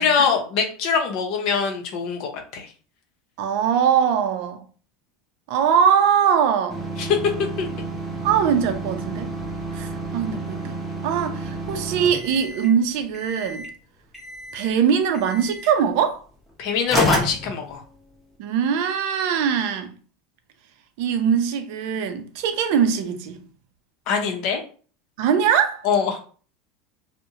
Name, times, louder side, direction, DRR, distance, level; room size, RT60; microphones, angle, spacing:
voice 1, 0.0-2.7 7.0-7.2 7.6-7.7 16.6-17.8 24.1-24.6 25.8-26.2, left 6 dB, 50° left, 0.6 m, -23 dB
voice 2, 3.4-4.6 5.5-6.8 8.2-9.3 9.7-10.8 11.0-13.7 14.5-16.2 18.4-19.9 21.0-23.4 25.2-25.8, right 7 dB, 60° right, 0.5 m, -21 dB
sound 1, 6.7-12.8 13.1-13.8 14.1-14.8 15.1-15.7 16.5-16.6 16.9-18.2, right 1 dB, 5° left, 0.8 m, -30 dB
2.5 x 2.1 x 2.7 m
supercardioid pair, 150°, 0 cm